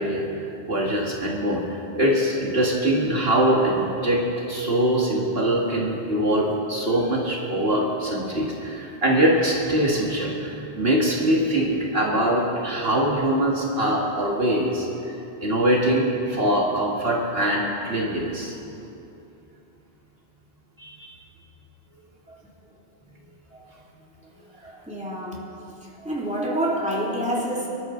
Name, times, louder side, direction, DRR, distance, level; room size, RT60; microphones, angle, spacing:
voice 1, 0.0-18.7 20.8-21.1, right 1 dB, 60° right, -2 dB, 2.0 m, -23 dB
voice 2, 24.6-25.4 26.0-27.7, right 1 dB, 5° right, -4 dB, 2.7 m, -27 dB
25.5 x 13.0 x 3.9 m, 2.8 s
omnidirectional pair, 1.1 m